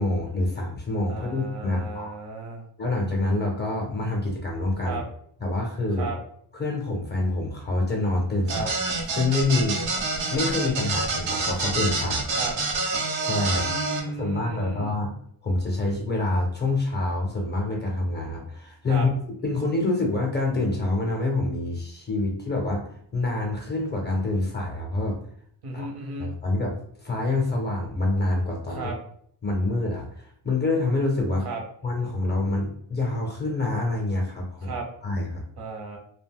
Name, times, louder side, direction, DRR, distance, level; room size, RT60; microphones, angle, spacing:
voice 1, 0.0-2.2 2.8-5.0 5.4-6.1 6.5-8.7 9.1-9.8 10.3-12.3 13.2-15.1 15.4-19.1 19.4-25.2 25.7-25.9 26.2-28.9 29.4-31.5 31.8-34.8 35.0-35.4, left 2 dB, 25° left, 0 dB, 0.4 m, -26 dB
voice 2, 1.1-2.6 4.9-5.0 6.0-6.2 8.5-8.7 12.4-12.5 13.6-15.0 18.9-19.1 25.6-26.3 28.7-29.0 31.4-31.6 34.6-34.9 35.6-36.0, right 3 dB, 55° right, 1 dB, 0.8 m, -34 dB
sound 1, 8.5-14.0, right 3 dB, 85° right, 0.8 m, -27 dB
2.3 x 2.1 x 3.4 m, 0.65 s
wide cardioid pair, 145°, 46 cm